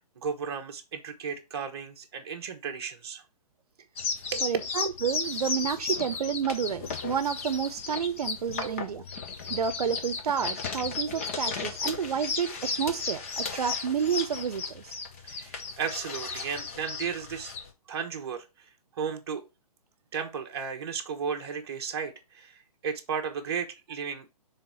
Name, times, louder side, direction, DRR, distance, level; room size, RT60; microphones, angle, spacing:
voice 1, 0.2-3.2 4.3-4.5 8.6-8.8 11.1-11.2 15.2-17.5 17.9-18.4 19.0-19.4 20.1-24.3, right 6 dB, 40° right, 1.1 m, -34 dB
sound 1, 4.0-17.7, left 5 dB, 20° left, 0.6 m, -34 dB
voice 2, 4.4-9.0 9.5-14.9, right 7 dB, 70° right, 0.7 m, -30 dB
5.8 x 3.6 x 5.6 m
hypercardioid pair, 175°, 20 cm